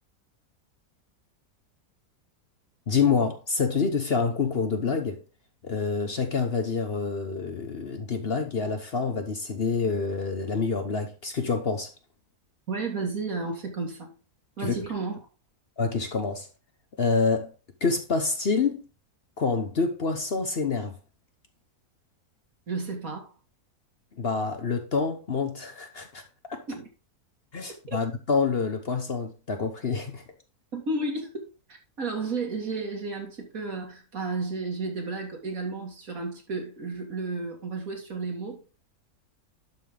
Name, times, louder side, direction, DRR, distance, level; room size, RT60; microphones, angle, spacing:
voice 1, 2.9-5.2 5.6-11.9 14.6-14.7 15.8-16.5 17.0-17.5 17.8-18.8 19.4-20.9 24.2-26.2 26.5-26.6 27.5-30.2, left 4 dB, 45° left, 1.1 m, -27 dB
voice 2, 12.7-14.1 14.6-15.2 22.7-23.3 26.7-26.9 30.7-38.6, right 3 dB, 65° right, 2.6 m, -32 dB
11.5 x 5.3 x 3.8 m
omnidirectional pair, 1.6 m